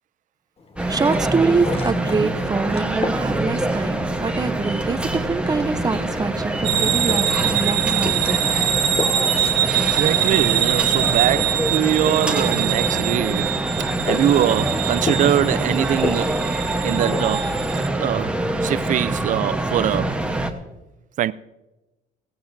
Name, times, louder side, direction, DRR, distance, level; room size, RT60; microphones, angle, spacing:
sound 1, 0.6-18.4, left 3 dB, 35° left, 1.4 m, -35 dB
sound 2, 0.8-20.5, right 1 dB, 5° right, 1.1 m, -25 dB
voice 1, 0.9-8.4, right 4 dB, 20° right, 0.8 m, -24 dB
sound 3, 6.6-17.9, right 11 dB, 85° right, 0.9 m, -24 dB
voice 2, 9.7-16.4 16.8-18.3 18.6-20.2 21.2-21.3, right 11 dB, 50° right, 0.4 m, -23 dB
17.0 x 16.0 x 2.7 m
cardioid pair, 110°, 17 cm